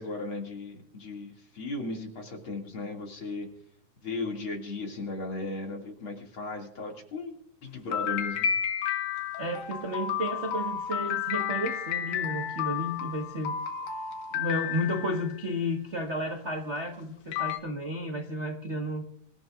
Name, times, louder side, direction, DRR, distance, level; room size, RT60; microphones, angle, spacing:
voice 1, 0.0-3.5 4.0-7.3 7.6-8.4, left 3 dB, 40° left, 3.0 m, -36 dB
sound 1, 7.9-15.3 16.8-16.9 17.3-17.6, left 9 dB, 65° left, 2.3 m, -31 dB
voice 2, 9.4-13.5 14.3-19.1, equal, 50° right, 0.8 m, -32 dB
25.5 x 14.0 x 2.6 m
omnidirectional pair, 4.0 m